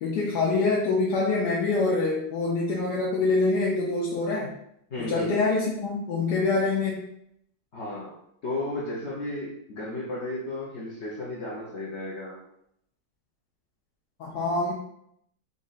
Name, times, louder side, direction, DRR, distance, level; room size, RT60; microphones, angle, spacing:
voice 1, 0.0-4.5 5.0-7.0 14.2-14.7, left 3 dB, 75° left, -4 dB, 1.3 m, -25 dB
voice 2, 4.9-5.4 7.7-8.1 8.4-12.4, left 1 dB, 55° left, -5 dB, 0.8 m, -34 dB
3.9 x 2.5 x 4.0 m, 0.76 s
omnidirectional pair, 1.9 m